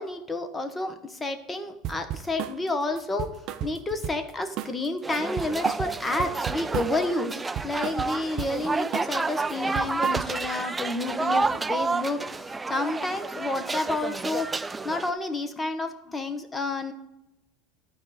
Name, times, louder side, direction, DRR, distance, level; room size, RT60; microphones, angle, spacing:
voice 1, 0.0-14.5 14.8-16.9, left 2 dB, 15° left, 8 dB, 1.1 m, -30 dB
sound 1, 1.8-2.6 3.0-4.3 4.6-4.9 5.1-7.0 7.3-8.6 8.9-9.2 9.5-10.5, right 11 dB, 55° right, 0.6 m, -34 dB
sound 2, 5.0-15.1, right 3 dB, 15° right, 0.3 m, -30 dB
12.0 x 4.7 x 5.0 m, 0.90 s
supercardioid pair, 105°, 0 cm